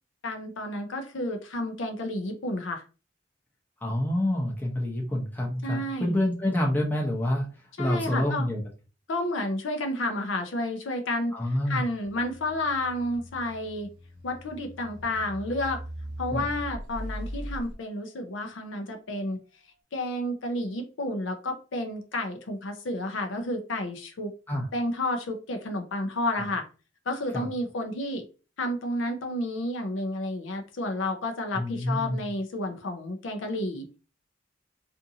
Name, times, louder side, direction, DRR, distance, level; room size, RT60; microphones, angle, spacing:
voice 1, 0.2-2.8 5.6-6.1 7.8-8.5 9.1-11.3 11.7-13.9 14.2-15.8 16.2-19.4 19.9-24.3 24.7-26.7 27.1-28.2 28.6-33.9, left 1 dB, 80° left, 5 dB, 0.6 m, -31 dB
voice 2, 3.8-7.5 7.8-8.6 11.3-11.8 16.3-16.4 24.5-24.7 26.3-26.5 27.3-27.5 31.5-32.3, left 1 dB, 10° left, -2 dB, 0.7 m, -27 dB
sound 1, 12.0-17.7, equal, 20° right, 1.0 m, -40 dB
2.6 x 2.5 x 2.7 m, 0.33 s
head